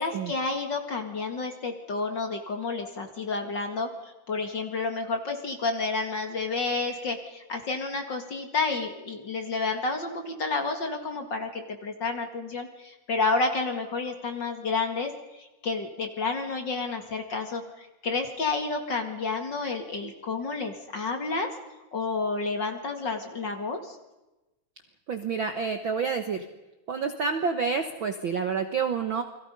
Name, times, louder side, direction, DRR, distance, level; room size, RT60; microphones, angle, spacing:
voice 1, 0.0-21.5 21.9-24.0, left 3 dB, 40° left, 5 dB, 2.2 m, -30 dB
voice 2, 25.1-26.4 26.9-29.2, right 5 dB, 55° right, 7 dB, 1.4 m, -28 dB
29.5 x 22.0 x 5.4 m, 1.0 s
omnidirectional pair, 3.7 m